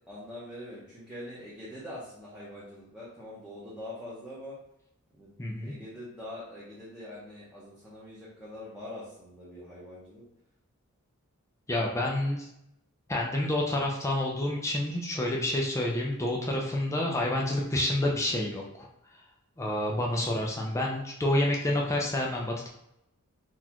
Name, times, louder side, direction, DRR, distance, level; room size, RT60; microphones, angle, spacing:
voice 1, 0.1-4.5 5.1-5.3 5.6-10.2 11.9-12.2, left 1 dB, 5° right, -9 dB, 0.8 m, -44 dB
voice 2, 5.4-5.7 11.7-12.4 13.1-18.9 19.6-22.7, left 1 dB, 15° left, -2 dB, 0.4 m, -28 dB
3.9 x 2.4 x 2.9 m, 0.83 s
head